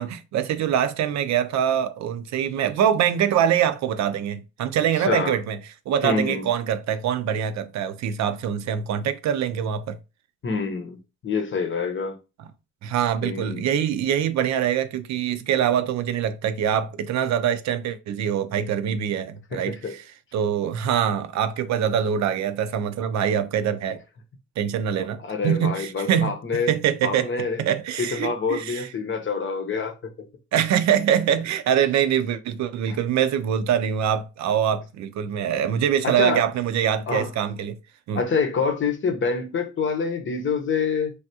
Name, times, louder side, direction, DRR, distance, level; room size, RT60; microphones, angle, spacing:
voice 1, 0.0-5.6 5.9-10.0 12.8-20.0 20.3-24.0 24.6-27.3 27.6-28.9 30.5-37.8 38.1-38.2, right 9 dB, 65° right, 0.4 m, -24 dB
voice 2, 5.0-5.4 6.0-6.5 10.4-11.0 11.2-12.2 13.2-13.7 19.5-20.0 24.9-26.7 27.0-27.6 28.0-30.3 32.9-33.0 36.0-36.4 37.1-37.3 38.1-41.1, left 5 dB, 40° left, 0.8 m, -26 dB
3.3 x 2.3 x 2.7 m
cardioid pair, 90°, 30 cm